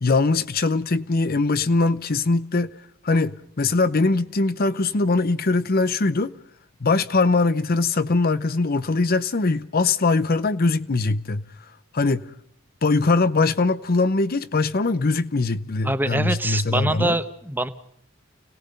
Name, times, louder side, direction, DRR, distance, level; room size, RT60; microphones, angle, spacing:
voice 1, 0.0-2.7 3.0-6.3 6.8-11.5 11.9-12.2 12.8-17.2, left 3 dB, 45° left, 0.7 m, -21 dB
voice 2, 15.8-17.7, right 1 dB, 10° right, 1.1 m, -24 dB
30.0 x 18.0 x 5.3 m
head